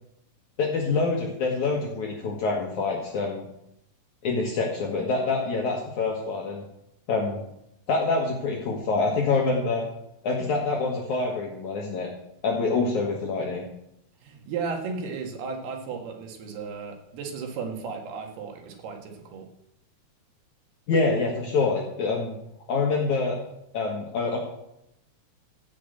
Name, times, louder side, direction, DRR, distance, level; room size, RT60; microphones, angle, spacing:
voice 1, 0.6-3.5 4.2-6.6 7.1-7.4 7.9-9.8 10.2-12.1 12.4-13.6 20.9-22.4 22.7-23.4 23.7-24.4, left 3 dB, 60° left, -1 dB, 2.5 m, -26 dB
voice 2, 14.2-19.5, right 5 dB, 80° right, 3 dB, 3.8 m, -34 dB
16.0 x 6.1 x 7.9 m, 0.81 s
omnidirectional pair, 4.5 m